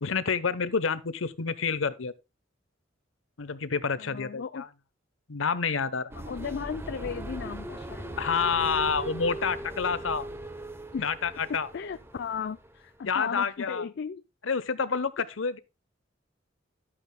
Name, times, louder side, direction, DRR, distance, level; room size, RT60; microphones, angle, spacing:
voice 1, 0.0-2.1 3.4-4.7 5.3-6.1 8.2-10.2 11.0-11.7 13.0-13.8 14.4-15.6, left 5 dB, 90° left, 0.9 m, -28 dB
voice 2, 4.0-4.6 6.1-8.2 10.9-11.1 11.5-14.2, left 6 dB, 60° left, 0.4 m, -36 dB
sound 1, 6.1-12.7, right 2 dB, 15° right, 0.8 m, -39 dB
12.0 x 8.9 x 2.2 m
head